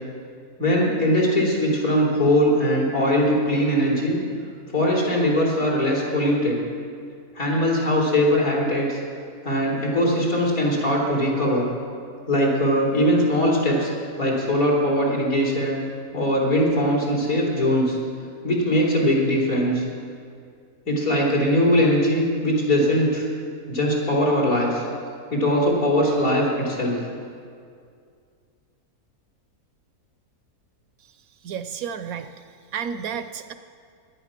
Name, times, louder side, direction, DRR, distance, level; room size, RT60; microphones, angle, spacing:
voice 1, 0.6-4.2 4.7-6.6 7.4-9.0 9.4-11.7 12.3-13.9 14.2-15.8 16.1-18.0 18.4-19.8 20.9-23.3 23.7-24.8 25.3-27.0, equal, 60° left, -3 dB, 3.8 m, -21 dB
voice 2, 31.4-32.3 32.7-33.5, right 7 dB, 70° right, 10 dB, 1.0 m, -31 dB
17.5 x 11.0 x 6.0 m, 2.2 s
omnidirectional pair, 1.6 m